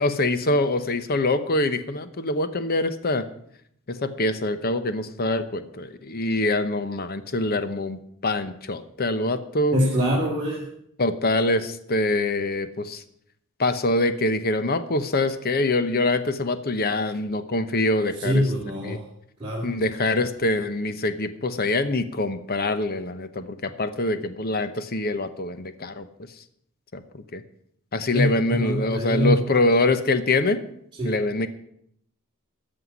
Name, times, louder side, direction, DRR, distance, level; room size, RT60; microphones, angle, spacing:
voice 1, 0.0-3.3 3.9-9.8 11.0-13.0 13.6-18.5 18.8-19.0 19.6-26.1 26.9-27.4 27.9-30.6 31.0-31.5, left 2 dB, 45° left, 11 dB, 0.9 m, -24 dB
voice 2, 9.7-10.6 18.2-19.0 19.4-19.7 28.1-29.4 31.0-31.1, equal, 20° right, -6 dB, 3.1 m, -24 dB
14.0 x 5.8 x 9.5 m, 0.71 s
head